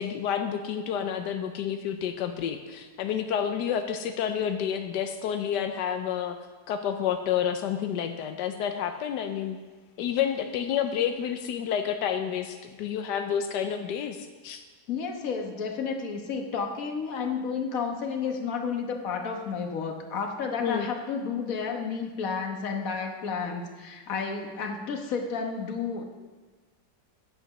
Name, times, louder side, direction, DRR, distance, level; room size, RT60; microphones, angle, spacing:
voice 1, 0.0-6.4 6.7-9.6 10.0-14.6 20.6-20.9, left 8 dB, 85° left, 6 dB, 1.3 m, -29 dB
voice 2, 14.9-26.0, left 5 dB, 55° left, 3 dB, 1.6 m, -31 dB
9.9 x 8.0 x 6.0 m, 1.3 s
omnidirectional pair, 1.8 m